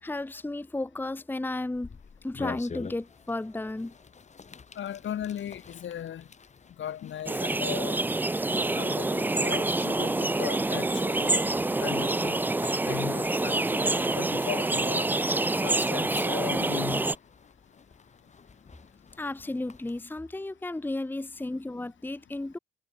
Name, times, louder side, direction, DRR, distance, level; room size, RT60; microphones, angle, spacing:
voice 1, 0.0-1.9 2.2-3.9 19.2-22.6, left 2 dB, 10° left, 1.0 m, -33 dB
sound 1, 1.7-20.1, left 5 dB, 35° left, 2.0 m, -49 dB
voice 2, 4.8-6.2 6.8-8.0 8.5-11.4 11.8-12.4 12.8-15.1 15.6-17.0, left 10 dB, 70° left, 2.5 m, -37 dB
sound 2, 7.3-17.2, right 2 dB, 10° right, 0.4 m, -27 dB
cardioid pair, 85°, 20 cm